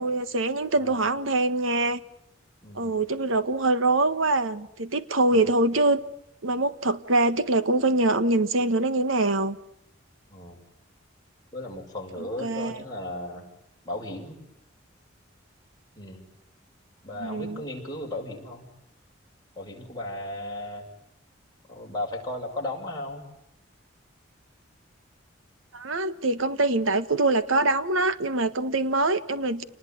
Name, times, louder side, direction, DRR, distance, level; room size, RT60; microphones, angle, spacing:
voice 1, 0.0-2.0 2.7-6.0 6.4-9.6 12.4-12.8 17.2-17.6 25.7-29.6, right 2 dB, 80° right, 1.5 m, -24 dB
voice 2, 0.7-1.1 2.6-3.0 5.3-5.5 10.3-10.6 11.5-13.5 13.8-14.4 15.9-16.2 17.0-18.7 19.6-20.8 21.7-23.2, left 1 dB, 20° left, 6.7 m, -35 dB
28.5 x 20.0 x 9.4 m
head